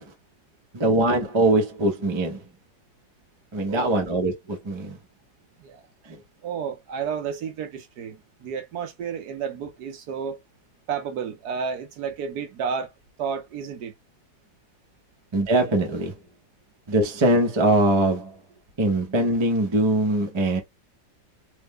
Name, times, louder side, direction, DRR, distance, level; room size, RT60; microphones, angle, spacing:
voice 1, 0.7-2.4 3.5-5.0 15.3-16.1 16.9-18.3 18.8-20.6, right 2 dB, 45° right, 0.3 m, -22 dB
voice 2, 3.7-4.0 5.6-5.8 6.4-10.4 10.9-12.9 13.2-13.9, right 6 dB, 65° right, 1.1 m, -31 dB
3.4 x 2.1 x 3.5 m
omnidirectional pair, 2.0 m